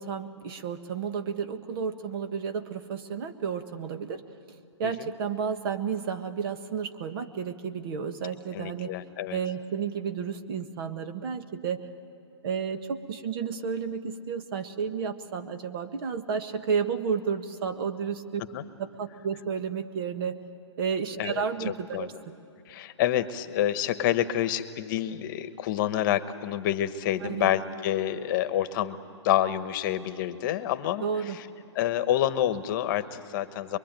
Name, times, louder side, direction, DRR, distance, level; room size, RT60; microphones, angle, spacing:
voice 1, 0.0-4.2 4.5-8.9 9.3-11.8 12.4-18.4 18.8-20.4 20.8-22.4 27.2-27.6 31.0-31.4, right 6 dB, 50° right, 9 dB, 1.7 m, -32 dB
voice 2, 8.5-9.4 18.5-18.6 21.2-22.1 22.7-29.0 29.2-31.5 31.7-33.8, left 11 dB, 45° left, 12 dB, 1.2 m, -28 dB
24.5 x 23.5 x 9.1 m, 2.8 s
hypercardioid pair, 135°, 15 cm